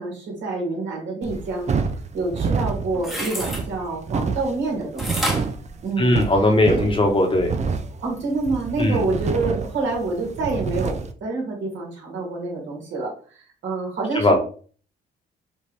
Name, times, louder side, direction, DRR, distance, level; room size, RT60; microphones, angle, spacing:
voice 1, 0.0-1.8 2.1-5.4 5.8-6.2 6.7-6.8 8.0-13.1 13.6-14.3, right 3 dB, 70° right, -3 dB, 2.4 m, -27 dB
sound 1, 1.2-11.1, right 5 dB, 35° right, 0.6 m, -28 dB
sound 2, 2.9-3.6 5.0-6.5 7.0-7.1, equal, ahead, 1.1 m, -29 dB
voice 2, 6.0-7.5 8.8-9.0 14.1-14.3, left 1 dB, 25° left, 2 dB, 1.2 m, -18 dB
5.2 x 2.7 x 3.3 m, 0.42 s
cardioid pair, 90°, 20 cm